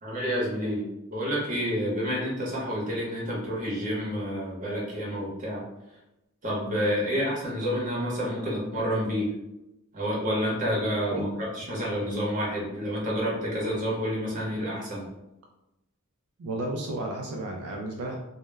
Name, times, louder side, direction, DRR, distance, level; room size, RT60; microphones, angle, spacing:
voice 1, 0.0-5.6 6.4-9.3 9.9-15.1, equal, 35° right, -5 dB, 0.8 m, -29 dB
voice 2, 16.4-18.2, right 2 dB, 75° right, 0 dB, 0.4 m, -32 dB
2.1 x 2.0 x 3.2 m, 0.92 s
head